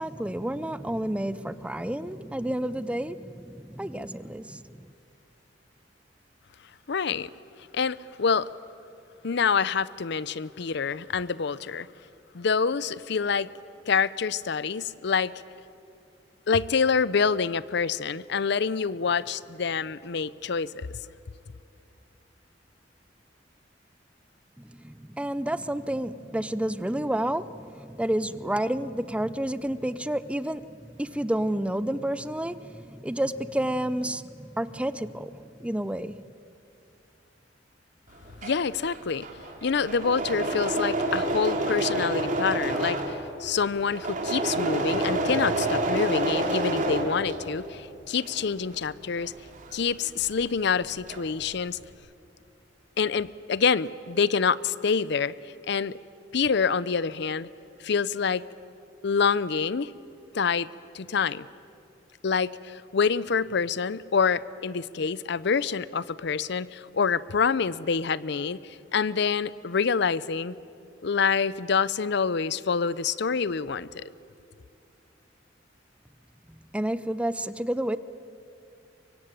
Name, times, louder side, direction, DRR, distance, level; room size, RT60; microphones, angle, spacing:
voice 1, 0.0-4.9 24.6-36.2 76.7-78.0, right 1 dB, 5° right, 15 dB, 0.6 m, -30 dB
voice 2, 6.9-7.3 7.7-8.5 9.2-11.9 12.3-13.5 13.9-15.3 16.5-20.9 38.4-39.3 39.6-49.3 49.7-51.8 53.0-56.0 56.3-57.5 57.8-58.4 59.0-59.9 60.3-60.7 60.9-61.5 62.2-70.6 71.0-74.0, left 5 dB, 65° left, 19 dB, 0.6 m, -26 dB
Engine / Mechanisms, 38.1-47.8 48.1-50.5 50.7-51.4, right 1 dB, 45° right, 3.2 m, -29 dB
24.0 x 23.5 x 9.0 m, 2.5 s
head